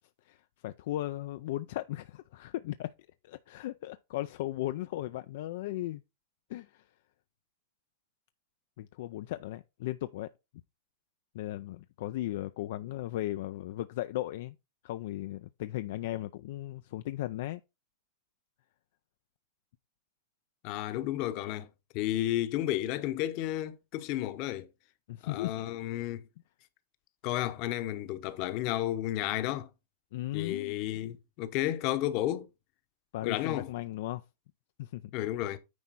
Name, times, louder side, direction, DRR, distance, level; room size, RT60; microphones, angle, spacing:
voice 1, 0.6-2.9 3.2-6.0 6.5-6.8 8.8-10.3 11.3-14.6 14.8-17.6 25.1-25.6 30.1-30.7 33.1-34.2 34.8-35.0, left 15 dB, 60° left, 0.4 m, -36 dB
voice 2, 20.6-21.7 21.9-24.7 25.2-26.3 27.2-29.7 30.3-32.5 33.2-33.7 35.1-35.6, left 14 dB, 40° left, 0.9 m, -32 dB
9.6 x 4.4 x 4.1 m
supercardioid pair, 155°, 0 cm